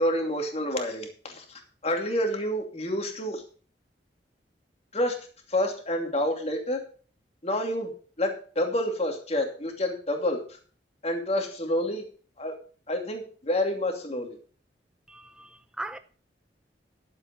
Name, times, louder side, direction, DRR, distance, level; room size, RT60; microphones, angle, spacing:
voice 1, 0.0-3.4 4.9-5.2 5.5-6.8 7.4-7.9 8.2-10.6 11.0-12.0 12.4-12.5 12.9-14.3, left 1 dB, 40° left, 2.7 m, -28 dB
voice 2, 15.1-16.0, right 2 dB, 5° right, 0.6 m, -39 dB
11.5 x 7.9 x 5.2 m
head